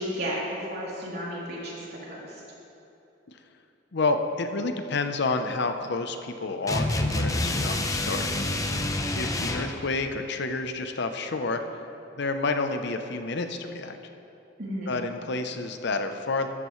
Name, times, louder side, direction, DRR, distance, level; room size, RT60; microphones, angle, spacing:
voice 1, 0.0-2.4 14.6-14.9, equal, 60° right, -6 dB, 3.2 m, -33 dB
voice 2, 3.9-8.3 8.7-8.9 9.1-11.6 12.1-14.0 14.9-16.5, left 3 dB, 65° left, 7 dB, 0.7 m, -29 dB
sound 1, 6.7-9.8, left 2 dB, 20° left, 0.7 m, -27 dB
13.5 x 13.5 x 3.2 m, 2.8 s
head